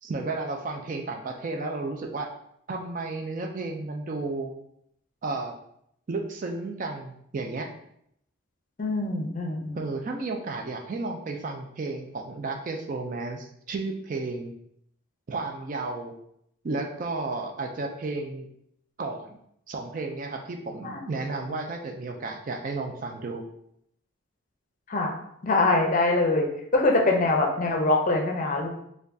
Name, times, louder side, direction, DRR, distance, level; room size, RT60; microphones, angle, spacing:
voice 1, 0.0-2.3 2.7-4.5 5.2-5.5 6.1-7.7 9.7-14.5 15.3-16.1 16.6-18.5 19.0-19.4 19.7-23.4, right 3 dB, 40° right, 3 dB, 0.3 m, -33 dB
voice 2, 8.8-9.8 20.8-21.0 24.9-25.2 25.4-26.5 26.7-28.7, left 2 dB, 40° left, 1 dB, 0.5 m, -23 dB
4.4 x 2.3 x 2.6 m, 0.73 s
head